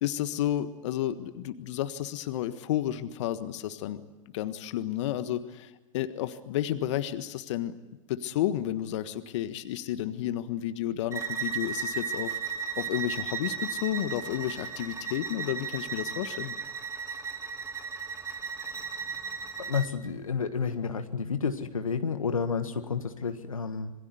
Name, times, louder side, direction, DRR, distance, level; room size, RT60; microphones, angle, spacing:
voice 1, 0.0-4.0 4.3-7.7 8.1-12.4 12.8-16.6, left 12 dB, 60° left, 11 dB, 1.5 m, -31 dB
Bowed string instrument, 11.1-19.9, right 6 dB, 15° right, 2.1 m, -35 dB
voice 2, 19.6-23.9, left 5 dB, 85° left, 9 dB, 1.6 m, -30 dB
27.0 x 21.5 x 9.6 m, 1.0 s
figure-of-eight pair, 95°, 17 cm